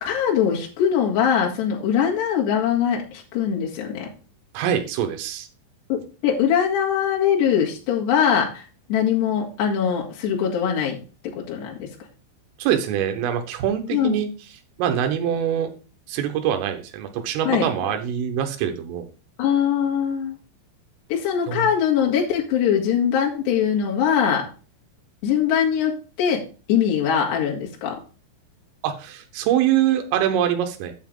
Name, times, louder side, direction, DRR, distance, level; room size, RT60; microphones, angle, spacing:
voice 1, 0.0-4.1 5.9-8.6 8.9-11.0 11.2-11.9 13.9-14.2 17.5-17.9 19.4-20.4 21.1-24.5 25.2-26.4 26.7-28.0, left 8 dB, 65° left, -2 dB, 3.9 m, -22 dB
voice 2, 4.6-5.5 12.6-14.3 14.8-15.7 16.1-19.1 21.5-21.7 28.8-30.9, right 10 dB, 85° right, 5 dB, 3.7 m, -24 dB
8.8 x 7.1 x 3.7 m, 0.35 s
omnidirectional pair, 5.7 m